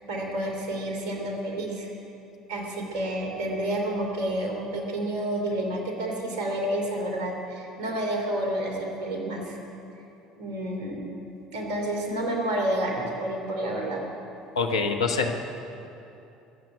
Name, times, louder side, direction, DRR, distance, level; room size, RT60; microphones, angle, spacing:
voice 1, 0.1-1.9 2.5-9.6 10.4-11.1 11.5-14.0, right 1 dB, 60° right, 1 dB, 3.1 m, -29 dB
voice 2, 14.6-15.3, left 4 dB, 80° left, 4 dB, 1.2 m, -25 dB
22.0 x 7.7 x 8.2 m, 2.9 s
figure-of-eight pair, 60°, 3 cm